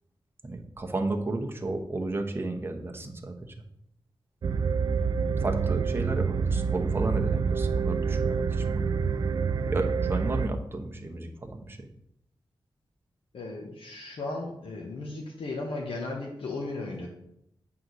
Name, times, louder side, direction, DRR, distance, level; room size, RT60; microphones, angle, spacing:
voice 1, 0.4-3.5 5.4-8.8 9.7-11.9, right 2 dB, 25° right, 3 dB, 0.9 m, -33 dB
sound 1, 4.4-10.5, right 5 dB, 50° right, 0.4 m, -27 dB
voice 2, 13.3-17.1, left 2 dB, 90° left, -2 dB, 1.2 m, -35 dB
8.5 x 3.8 x 6.2 m, 0.78 s
wide cardioid pair, 165°, 9 cm